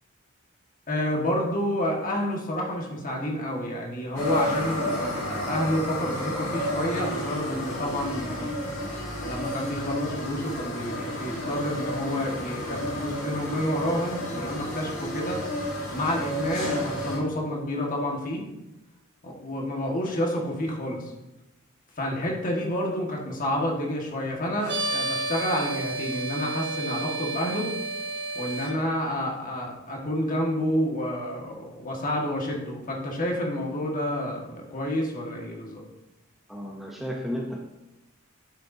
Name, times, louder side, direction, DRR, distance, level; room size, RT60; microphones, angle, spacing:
voice 1, 0.9-8.7 9.2-15.4 15.9-18.5 19.2-21.1 22.0-27.7 28.3-35.8, equal, 40° left, 0 dB, 1.6 m, -29 dB
sound 1, 4.1-17.2, equal, 85° left, 2.2 m, -31 dB
sound 2, 24.6-28.7, right 2 dB, 55° right, 1.5 m, -31 dB
voice 2, 36.5-37.6, equal, ahead, -1 dB, 0.6 m, -33 dB
11.0 x 6.7 x 2.7 m, 0.97 s
head